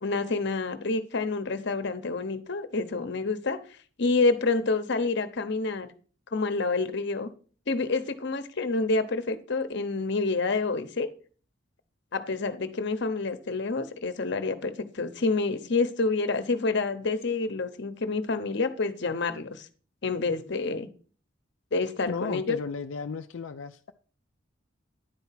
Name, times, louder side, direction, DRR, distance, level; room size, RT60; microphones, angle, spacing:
voice 1, 0.0-3.6 4.0-5.9 6.3-7.3 7.7-11.1 12.1-19.7 20.0-20.9 21.7-22.6, left 3 dB, 60° left, 0.9 m, -28 dB
voice 2, 22.1-23.9, left 5 dB, 90° left, 0.5 m, -34 dB
10.5 x 4.6 x 5.7 m
head